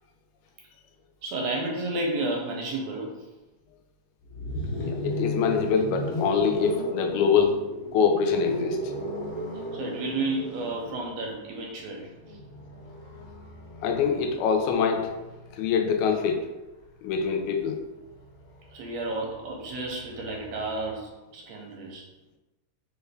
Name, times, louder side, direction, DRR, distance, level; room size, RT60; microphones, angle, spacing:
voice 1, 1.2-3.1 9.7-12.4 18.7-22.1, right 2 dB, 80° right, 1 dB, 1.6 m, -32 dB
sound 1, 4.2-16.2 17.4-21.0, equal, 65° left, 1.5 m, -36 dB
voice 2, 4.8-7.6 7.9-8.8 13.8-15.1 15.5-16.5 17.0-17.8, left 6 dB, 85° left, 4 dB, 2.0 m, -24 dB
4.9 x 2.2 x 3.3 m, 1.1 s
omnidirectional pair, 3.4 m